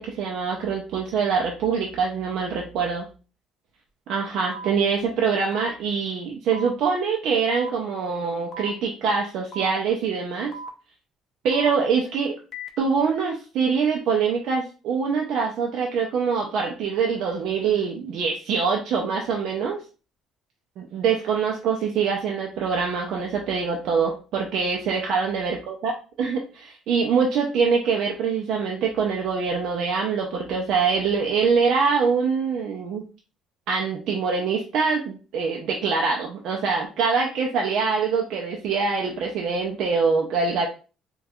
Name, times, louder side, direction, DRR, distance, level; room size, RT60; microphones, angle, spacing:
voice 1, 0.0-3.1 4.1-10.5 11.4-12.3 12.8-19.8 20.8-25.9 26.2-33.0 33.7-40.7, right 5 dB, 55° right, 1 dB, 0.5 m, -24 dB
sound 1, 4.5-4.7 5.5-5.7 6.5-6.7 7.5-7.7 8.5-8.7 9.5-9.7 10.5-10.7 11.5-11.7 12.5-12.7, right 1 dB, 30° left, 0.4 m, -36 dB
4.2 x 2.3 x 2.3 m, 0.35 s
cardioid pair, 175°, 0 cm